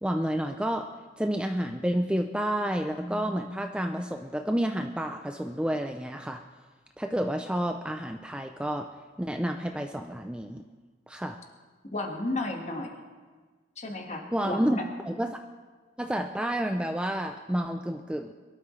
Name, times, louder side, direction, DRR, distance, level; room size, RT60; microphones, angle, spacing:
voice 1, 0.0-6.4 7.0-8.9 9.2-10.6 11.1-11.4 14.3-14.8 15.0-15.4 16.0-18.3, equal, 5° right, 5 dB, 0.4 m, -30 dB
voice 2, 11.9-13.0 13.8-14.9, left 2 dB, 35° left, 2 dB, 1.7 m, -33 dB
22.5 x 12.5 x 3.2 m, 1.4 s
head